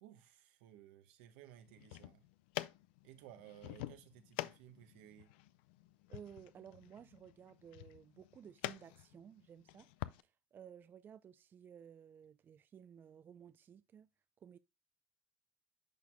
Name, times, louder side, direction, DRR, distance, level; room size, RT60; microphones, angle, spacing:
voice 1, 0.0-2.2 3.0-5.3, right 12 dB, 80° right, 1.1 m, -58 dB
sound 1, 1.7-10.2, left 17 dB, 85° left, 0.4 m, -48 dB
voice 2, 6.1-9.9 10.2-14.1 14.4-14.6, right 8 dB, 40° right, 0.4 m, -56 dB
10.5 x 4.2 x 2.2 m
supercardioid pair, 85°, 6 cm